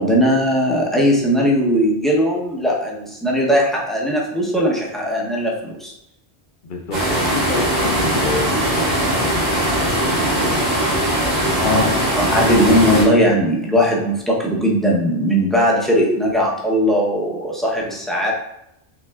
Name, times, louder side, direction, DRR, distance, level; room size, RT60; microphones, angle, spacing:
voice 1, 0.0-5.9 11.6-18.3, equal, ahead, -3 dB, 0.7 m, -18 dB
voice 2, 6.6-12.0, left 3 dB, 55° left, 3 dB, 0.8 m, -30 dB
sound 1, 6.9-13.0, right 1 dB, 60° right, 2.0 m, -20 dB
5.8 x 3.6 x 2.3 m, 0.81 s
omnidirectional pair, 1.1 m